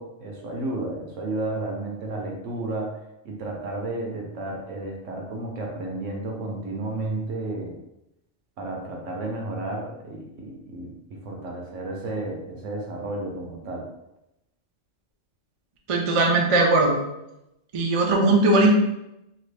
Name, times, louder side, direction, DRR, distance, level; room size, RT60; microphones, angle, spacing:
voice 1, 0.0-7.8 8.6-13.9, right 2 dB, 75° right, 0 dB, 1.1 m, -32 dB
voice 2, 15.9-17.0 17.7-18.7, right 2 dB, 50° right, 0 dB, 0.3 m, -19 dB
2.9 x 2.6 x 3.2 m, 0.87 s
omnidirectional pair, 1.3 m